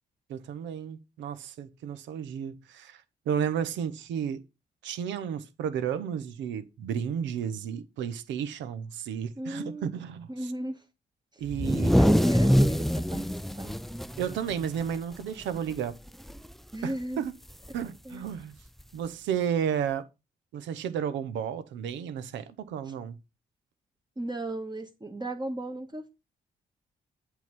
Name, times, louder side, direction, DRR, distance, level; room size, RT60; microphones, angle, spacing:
voice 1, 0.3-4.4 4.8-10.5 11.4-12.0 14.2-16.0 16.8-17.3 17.7-18.5 18.9-20.1 20.5-23.1, right 8 dB, 85° right, 0.9 m, -32 dB
voice 2, 9.4-9.9 10.3-10.8 11.9-13.3 13.6-13.8 16.7-17.2 18.0-18.2 22.8-22.9 24.2-26.1, right 2 dB, 25° right, 1.7 m, -35 dB
sound 1, 11.5-15.2 15.5-15.7 16.1-16.5 17.7-17.8 18.8-18.9, equal, ahead, 0.4 m, -24 dB
8.3 x 3.9 x 6.0 m
supercardioid pair, 50°, 19 cm